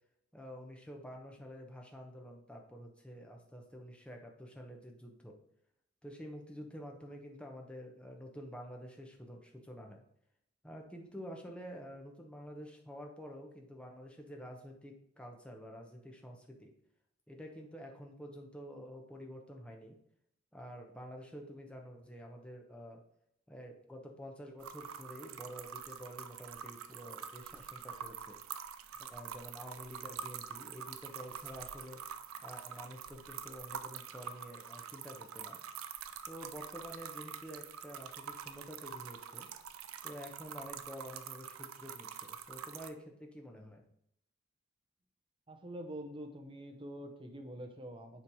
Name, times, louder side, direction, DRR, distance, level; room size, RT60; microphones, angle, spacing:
voice 1, 0.3-5.4 6.0-10.0 10.6-16.7 17.3-20.0 20.5-23.0 23.5-28.4 29.0-32.0 32.4-35.6 36.3-39.5 40.0-43.9, equal, 5° left, 1 dB, 0.8 m, -49 dB
sound 1, 24.6-42.9, right 8 dB, 85° right, 0.5 m, -46 dB
voice 2, 45.5-48.2, right 1 dB, 25° right, 5 dB, 0.7 m, -46 dB
7.2 x 3.2 x 5.5 m, 0.74 s
head